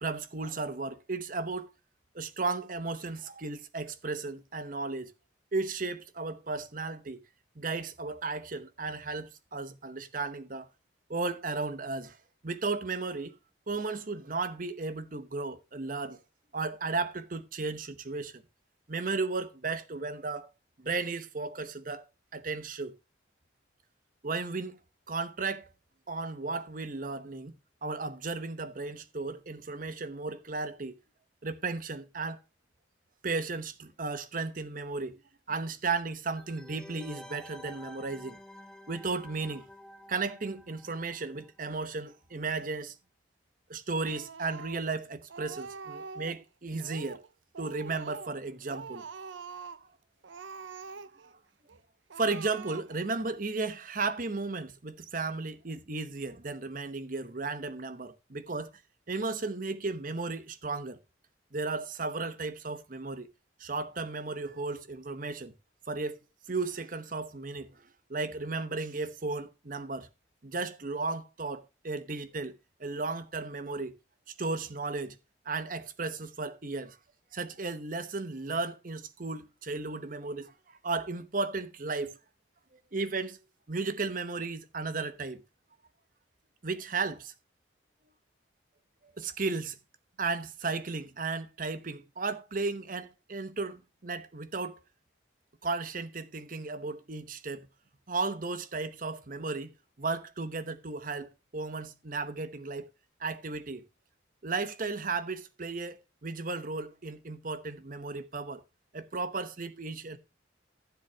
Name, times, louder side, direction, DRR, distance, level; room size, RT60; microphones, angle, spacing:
voice 1, 0.0-1.7 2.1-5.1 5.5-7.2 7.6-10.7 11.1-12.2 12.4-13.4 13.7-16.2 16.5-18.4 18.9-20.5 20.8-22.0 22.3-23.0 24.2-24.8 25.1-25.7 26.1-27.5 27.8-31.0 31.4-32.4 33.2-35.2 35.5-38.4 38.9-39.7 40.1-42.9 43.7-47.2 47.6-49.0 52.2-58.7 59.1-61.0 61.5-63.3 63.6-65.5 65.9-66.2 66.5-70.1 70.4-72.5 72.8-73.9 74.4-75.2 75.5-77.0 77.3-82.2 82.9-83.4 83.7-85.4 86.6-87.3 89.2-89.8 90.2-94.8 95.6-97.7 98.1-102.9 103.2-103.8 104.4-108.6 108.9-110.2, right 3 dB, 45° right, 0.9 m, -34 dB
sound 1, 36.4-41.8 42.1-42.2, left 1 dB, 5° left, 0.8 m, -51 dB
Speech, 44.0-45.0 45.3-46.4 46.8-47.3 47.5-48.4 48.7-49.9 50.2-51.3 51.7-51.8 52.1-53.1, right 5 dB, 75° right, 0.6 m, -44 dB
15.5 x 7.3 x 2.8 m
head